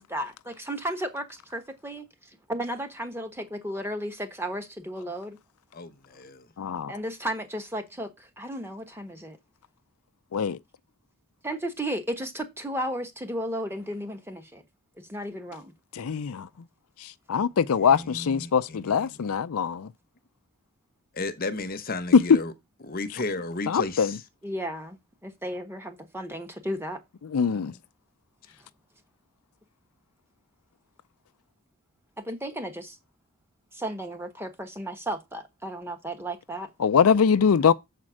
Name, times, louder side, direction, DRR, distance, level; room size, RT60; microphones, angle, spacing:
voice 1, 0.0-2.1 2.5-5.4 6.9-9.4 11.4-14.6 15.1-15.7 17.4-17.5 24.4-27.0 32.2-33.0 33.7-36.7, right 1 dB, 10° right, 1.2 m, -34 dB
voice 2, 5.7-6.5 17.7-19.3 21.1-22.5 22.8-24.2 27.4-27.8, left 2 dB, 40° left, 0.9 m, -34 dB
voice 3, 6.6-6.9 10.3-10.6 16.0-16.5 17.3-19.9 23.7-24.1 27.3-27.7 36.8-37.7, left 6 dB, 75° left, 0.4 m, -23 dB
7.4 x 4.3 x 6.1 m
head